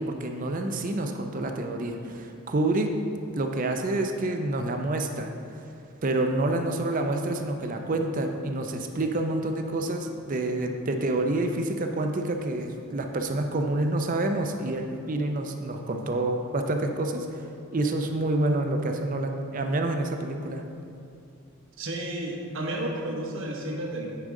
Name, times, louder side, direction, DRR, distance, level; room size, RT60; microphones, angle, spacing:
voice 1, 0.0-2.9 3.3-5.3 6.0-17.4 17.7-20.6, right 2 dB, 35° right, 4 dB, 0.5 m, -28 dB
voice 2, 21.8-24.1, right 1 dB, 60° right, 0 dB, 1.1 m, -32 dB
9.8 x 5.0 x 3.7 m, 2.5 s
head